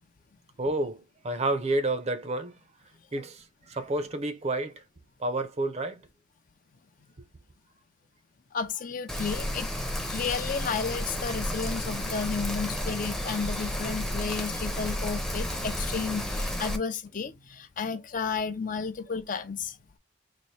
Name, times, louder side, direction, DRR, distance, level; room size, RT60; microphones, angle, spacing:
voice 1, 0.6-2.5 3.1-4.7 5.2-6.0, right 2 dB, 35° right, 0.6 m, -30 dB
voice 2, 8.5-9.7 10.1-19.8, left 5 dB, 45° left, 0.5 m, -32 dB
Rain, 9.1-16.8, equal, 5° left, 0.7 m, -32 dB
4.2 x 2.6 x 3.2 m
head